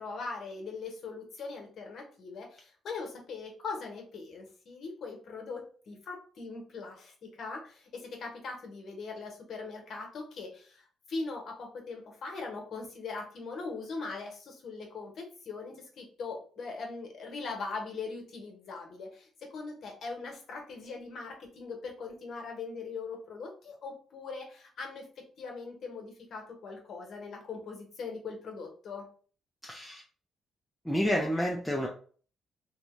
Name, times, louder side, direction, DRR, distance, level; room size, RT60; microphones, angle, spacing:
voice 1, 0.0-29.1, left 4 dB, 60° left, 1 dB, 1.0 m, -41 dB
voice 2, 29.6-30.0 30.8-31.9, equal, 5° left, -1 dB, 0.5 m, -29 dB
2.6 x 2.2 x 3.1 m, 0.43 s
cardioid pair, 90°, 0 cm